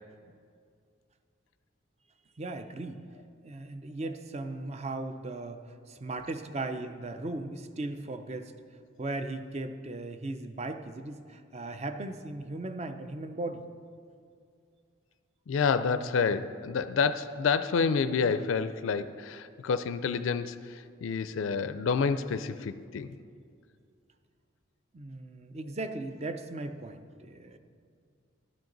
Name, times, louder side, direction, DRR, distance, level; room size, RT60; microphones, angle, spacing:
voice 1, 2.4-3.0 3.4-5.6 5.9-8.5 9.0-13.6 24.9-27.6, right 2 dB, 35° right, 9 dB, 0.5 m, -37 dB
voice 2, 15.5-23.1, left 5 dB, 80° left, 11 dB, 0.4 m, -29 dB
12.0 x 10.5 x 3.9 m, 2.3 s
head